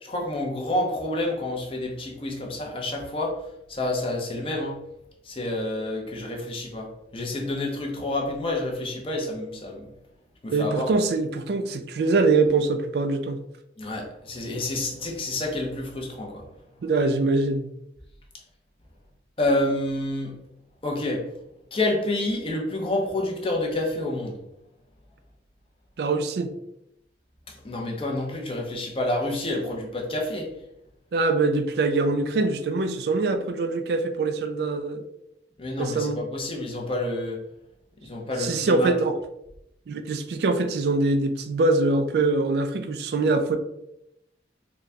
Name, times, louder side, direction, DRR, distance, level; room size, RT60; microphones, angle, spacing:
voice 1, 0.0-3.4 3.7-4.8 5.2-9.9 10.4-10.9 13.8-16.4 19.4-20.4 20.8-21.2 21.7-24.4 27.5-30.5 35.6-37.4 38.0-38.9, left 1 dB, 30° left, 0 dB, 0.7 m, -28 dB
voice 2, 10.5-13.4 16.8-17.7 26.0-26.5 31.1-35.0 35.8-36.2 38.4-39.2 39.9-43.6, right 3 dB, 60° right, 8 dB, 0.3 m, -23 dB
4.0 x 2.3 x 3.3 m, 0.83 s
head